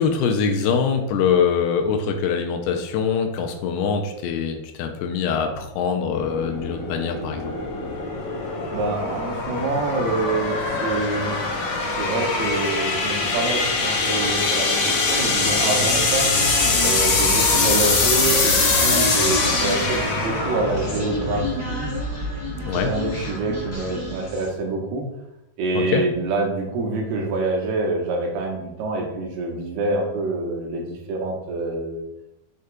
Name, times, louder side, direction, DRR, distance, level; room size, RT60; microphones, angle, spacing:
voice 1, 0.0-7.5 22.7-22.9 25.8-26.0, left 6 dB, 90° left, 4 dB, 2.6 m, -23 dB
sound 1, 6.1-21.5, left 3 dB, 65° left, 1.8 m, -23 dB
voice 2, 8.7-11.4 12.0-16.3 16.8-21.9 22.7-25.0 25.6-32.0, right 2 dB, 85° right, -1 dB, 3.0 m, -26 dB
Human voice, 15.1-24.6, equal, 40° left, 0.6 m, -30 dB
6.9 x 6.4 x 2.3 m, 0.89 s
omnidirectional pair, 4.5 m